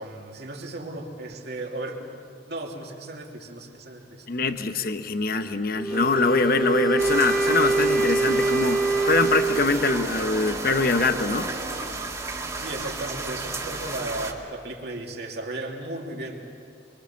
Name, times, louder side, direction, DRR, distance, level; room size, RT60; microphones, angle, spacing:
voice 1, 0.0-2.1 2.5-4.3 12.6-16.5, right 2 dB, 65° right, 0 dB, 2.9 m, -35 dB
voice 2, 4.3-11.5, left 3 dB, 55° left, 9 dB, 1.0 m, -24 dB
Wind instrument woodwind instrument, 5.8-10.1, right 3 dB, ahead, 0.9 m, -24 dB
sound 1, 5.9-12.2, right 2 dB, 35° right, 1.8 m, -38 dB
sound 2, 7.0-14.3, right 3 dB, 20° right, 2.0 m, -33 dB
24.5 x 24.0 x 7.2 m, 2.2 s
head